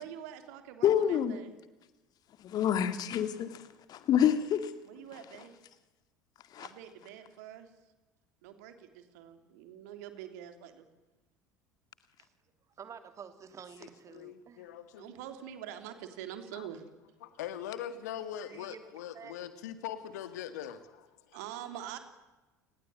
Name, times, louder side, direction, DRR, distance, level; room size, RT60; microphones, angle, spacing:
voice 1, 0.0-1.6 4.8-5.6 6.6-7.7 8.4-10.9 15.0-16.8 21.3-22.0, right 10 dB, 60° right, 8 dB, 3.2 m, -45 dB
voice 2, 0.8-1.4 2.4-3.6 3.9-4.7 6.5-6.7, left 9 dB, 40° left, 11 dB, 2.1 m, -27 dB
voice 3, 12.8-14.7 18.5-19.3, right 7 dB, 30° right, 9 dB, 3.0 m, -49 dB
voice 4, 13.8-15.1 16.5-16.7 17.2-21.4, left 10 dB, 65° left, 11 dB, 2.1 m, -42 dB
28.5 x 20.5 x 9.2 m, 1.1 s
figure-of-eight pair, 65°, 10 cm